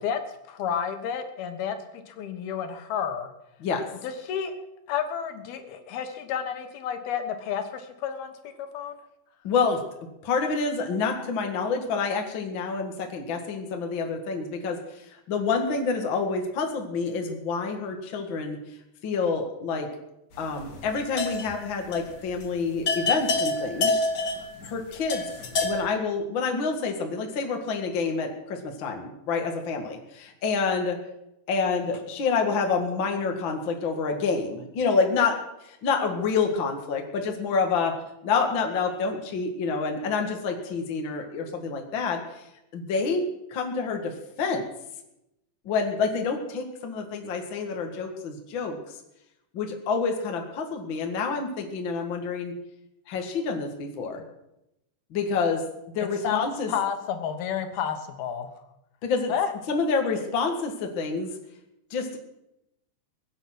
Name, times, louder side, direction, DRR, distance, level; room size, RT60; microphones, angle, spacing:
voice 1, 0.5-3.3 4.0-9.0 56.2-58.5 59.3-59.5, left 8 dB, 80° left, 6 dB, 3.2 m, -31 dB
voice 2, 9.4-9.8 10.2-18.6 19.0-19.9 20.4-23.9 24.6-25.2 25.6-31.0 31.5-35.4 35.6-38.0 38.2-42.4 42.7-43.2 43.5-44.7 45.7-48.8 49.5-52.5 53.1-54.2 55.1-55.6 55.9-56.7 59.0-59.3 59.7-61.3 61.9-62.2, left 4 dB, 40° left, 3 dB, 2.0 m, -28 dB
sound 1, 20.6-21.7 21.9-22.1 22.4-22.5 22.9-25.9, left 2 dB, 60° left, 1.0 m, -27 dB
22.5 x 9.0 x 6.0 m, 0.89 s
omnidirectional pair, 4.3 m